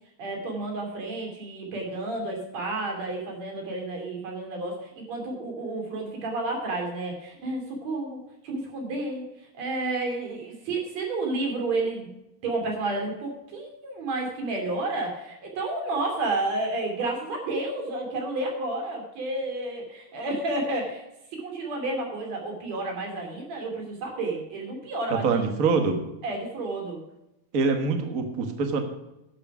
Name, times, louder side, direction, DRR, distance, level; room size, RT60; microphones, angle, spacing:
voice 1, 0.2-9.2 9.6-12.1 12.4-21.0 21.3-25.4 26.2-27.0, right 2 dB, 55° right, 1 dB, 3.8 m, -31 dB
voice 2, 25.1-26.0 27.5-28.8, right 4 dB, 90° right, 6 dB, 0.7 m, -24 dB
11.5 x 7.4 x 6.0 m, 0.90 s
omnidirectional pair, 3.9 m